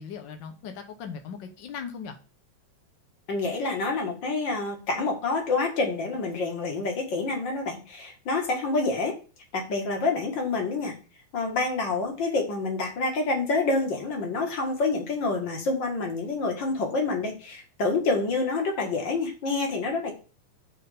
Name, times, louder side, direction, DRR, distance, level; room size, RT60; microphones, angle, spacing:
voice 1, 0.0-2.2, left 6 dB, 80° left, 6 dB, 1.0 m, -38 dB
voice 2, 3.3-9.1 9.5-10.9 11.3-20.1, left 3 dB, 45° left, 1 dB, 2.2 m, -27 dB
6.3 x 4.4 x 6.5 m, 0.35 s
omnidirectional pair, 3.4 m